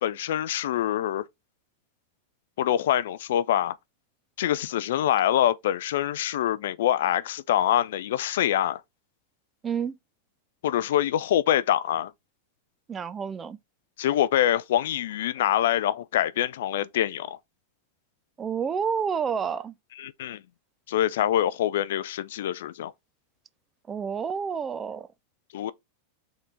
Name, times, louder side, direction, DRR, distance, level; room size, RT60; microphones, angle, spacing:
voice 1, 0.0-1.2 2.6-3.8 4.4-8.8 10.6-12.1 14.0-17.4 20.0-20.4 20.9-22.9 25.5-25.7, left 11 dB, 55° left, 0.3 m, -25 dB
voice 2, 9.6-10.0 12.9-13.6 18.4-19.7 23.9-25.1, right 6 dB, 20° right, 0.4 m, -29 dB
4.2 x 3.8 x 3.2 m
figure-of-eight pair, 90°, 0 cm